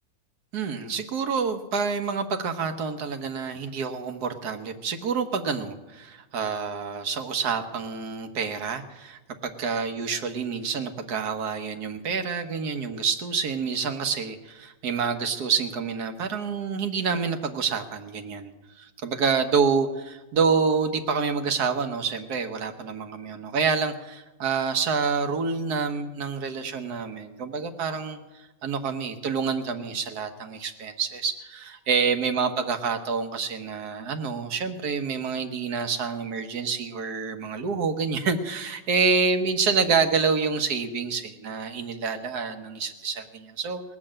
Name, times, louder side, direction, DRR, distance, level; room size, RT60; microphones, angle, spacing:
voice 1, 0.5-18.5 18.8-43.8, right 5 dB, 60° right, 7 dB, 1.5 m, -27 dB
18.5 x 7.3 x 8.7 m, 1.1 s
omnidirectional pair, 2.0 m